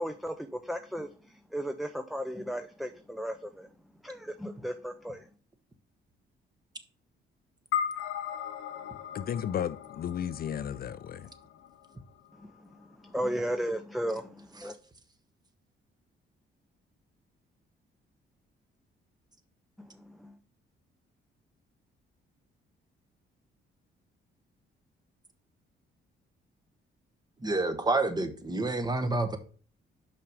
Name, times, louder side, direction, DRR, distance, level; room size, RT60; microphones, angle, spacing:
voice 1, 0.0-3.7 4.0-5.3 12.4-14.8 19.8-20.4, equal, ahead, 0.5 m, -35 dB
sound 1, 7.7-12.3, left 9 dB, 85° left, 0.7 m, -37 dB
voice 2, 9.1-11.3, left 9 dB, 50° left, 0.4 m, -33 dB
voice 3, 27.4-29.4, right 2 dB, 20° right, 1.1 m, -28 dB
5.6 x 5.1 x 4.8 m
cardioid pair, 90°, 20 cm